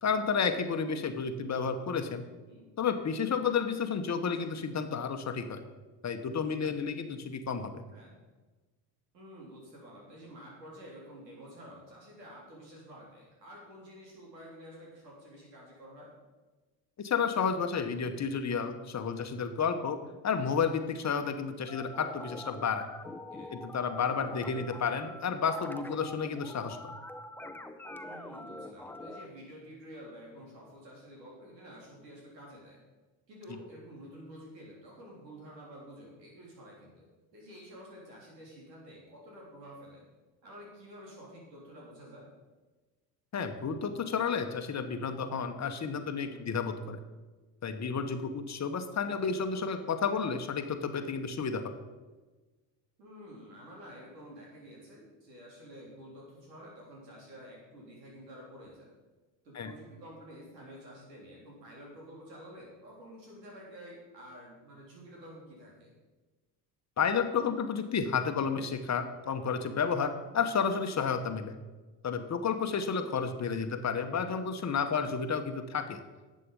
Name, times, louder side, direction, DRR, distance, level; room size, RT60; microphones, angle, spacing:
voice 1, 0.0-2.2 2.8-5.6 6.0-7.8 17.0-22.8 23.5-26.9 43.3-47.0 47.6-51.6 59.5-59.7 67.0-71.5 72.0-76.0, left 6 dB, 35° left, 8 dB, 1.2 m, -31 dB
voice 2, 9.1-16.1 23.3-23.5 25.9-26.0 28.0-32.8 33.3-40.0 40.4-42.3 46.3-46.5 50.2-50.3 53.0-58.9 59.4-65.9 74.7-75.0, equal, 90° right, -3 dB, 3.6 m, -50 dB
sound 1, 21.7-29.3, left 1 dB, 5° left, 0.8 m, -44 dB
11.0 x 7.6 x 5.4 m, 1.3 s
hypercardioid pair, 65°, 48 cm